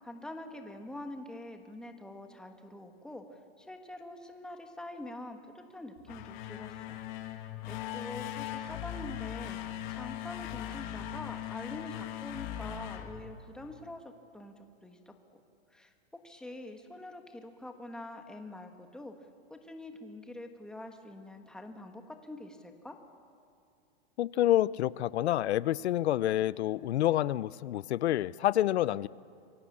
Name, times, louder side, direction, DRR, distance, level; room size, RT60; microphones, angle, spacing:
voice 1, 0.0-7.0 7.6-14.0 14.3-14.5 14.8-15.4 15.7-19.1 19.5-23.0, left 1 dB, ahead, 4 dB, 1.4 m, -45 dB
sound 1, 6.0-13.9, left 12 dB, 45° left, 2.2 m, -40 dB
voice 2, 24.2-29.1, left 13 dB, 80° left, 19 dB, 0.7 m, -28 dB
27.0 x 23.5 x 8.6 m, 2.4 s
supercardioid pair, 165°, 32 cm